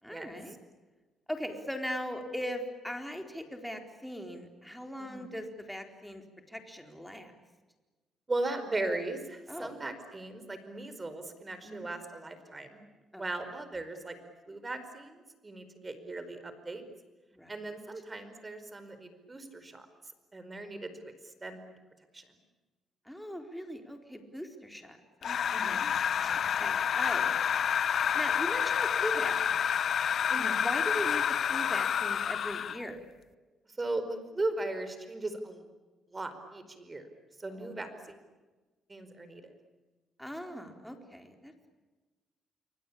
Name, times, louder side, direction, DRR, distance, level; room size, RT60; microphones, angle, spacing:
voice 1, 0.0-0.6 1.3-6.2 6.5-7.3 9.5-9.7 11.6-11.9 13.1-13.2 17.3-17.5 23.1-25.9 26.2-26.3 26.6-27.3 28.1-29.7 30.3-33.0 37.5-37.8 40.2-41.5, equal, ahead, 4 dB, 4.1 m, -39 dB
voice 2, 5.0-5.3 8.3-12.8 13.1-14.2 14.5-16.8 17.5-19.9 20.3-21.7 22.1-22.2 25.5-25.9 26.3-26.5 30.3-30.6 33.7-35.6 36.1-37.1 37.4-38.1 38.9-39.5, right 2 dB, 25° right, 10 dB, 4.7 m, -38 dB
sound 1, 25.2-32.9, left 8 dB, 60° left, 0.9 m, -29 dB
27.5 x 25.0 x 8.6 m, 1.2 s
cardioid pair, 90°, 0 cm